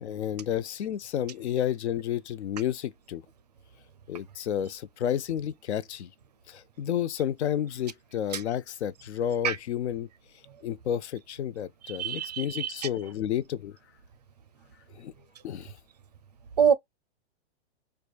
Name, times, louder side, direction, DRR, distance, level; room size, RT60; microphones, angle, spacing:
voice 1, 0.0-3.2 4.1-6.1 6.5-10.1 10.6-13.8 14.9-15.1 15.4-15.7, left 10 dB, 80° left, 0.6 m, -31 dB
voice 2, 11.9-12.7 16.6-16.7, right 8 dB, 40° right, 0.4 m, -24 dB
4.8 x 2.2 x 2.2 m
hypercardioid pair, 180°, 33 cm